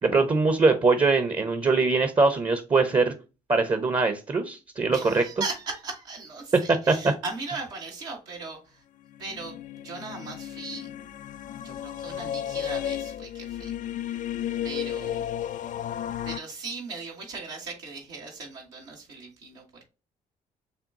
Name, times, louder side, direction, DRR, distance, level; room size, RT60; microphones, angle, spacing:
voice 1, 0.0-3.1 3.5-5.2 6.5-7.1, right 3 dB, 25° right, 8 dB, 0.8 m, -22 dB
voice 2, 4.9-8.8 9.2-9.5 9.8-10.9 11.6-13.7 14.6-15.2 16.2-19.9, right 3 dB, 75° right, -3 dB, 1.4 m, -38 dB
sound 1, 9.1-16.4, left 10 dB, 45° left, 0.4 m, -33 dB
6.8 x 2.3 x 2.6 m, 0.31 s
hypercardioid pair, 45°, 19 cm